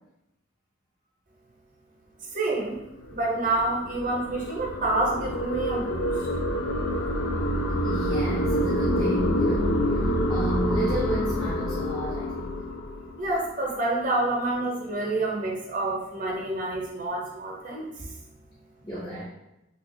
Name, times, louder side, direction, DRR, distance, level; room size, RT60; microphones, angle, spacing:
voice 1, 2.3-2.8 3.1-6.3 13.2-17.9, right 2 dB, 45° right, -2 dB, 0.8 m, -28 dB
sound 1, 2.8-13.4, equal, 70° left, 0.4 m, -27 dB
voice 2, 7.8-9.8 10.3-12.6 18.8-19.2, equal, 20° left, -9 dB, 0.6 m, -32 dB
2.8 x 2.3 x 3.8 m, 0.90 s
head